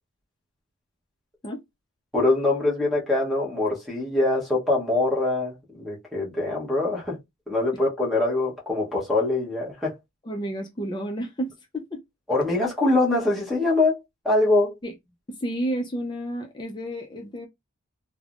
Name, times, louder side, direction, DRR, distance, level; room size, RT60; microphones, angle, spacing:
voice 1, 2.1-7.2 7.5-9.9 12.3-14.0 14.2-14.7, left 2 dB, ahead, 0.9 m, -23 dB
voice 2, 10.2-12.0 14.8-14.9 15.4-17.5, right 1 dB, 20° left, 0.4 m, -31 dB
3.2 x 2.0 x 2.4 m
head